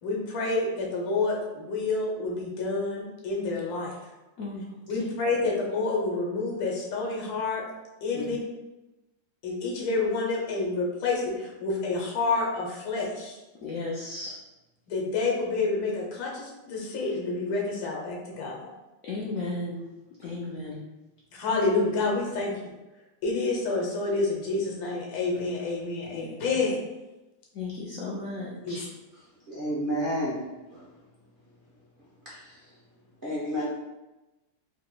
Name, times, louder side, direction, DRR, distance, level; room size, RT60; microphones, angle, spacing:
voice 1, 0.0-3.9 4.9-7.6 8.0-8.4 9.4-13.4 14.9-18.7 21.4-22.7 23.2-26.8 28.6-28.9, left 3 dB, 90° left, -1 dB, 1.7 m, -28 dB
voice 2, 13.6-14.3 19.0-19.8 20.2-20.8 26.1-26.3 27.5-28.8, left 3 dB, 70° left, -6 dB, 0.8 m, -34 dB
voice 3, 29.5-30.9 32.2-32.7 33.2-33.6, equal, 45° right, -10 dB, 0.7 m, -31 dB
4.8 x 2.8 x 2.2 m, 1.0 s
omnidirectional pair, 2.1 m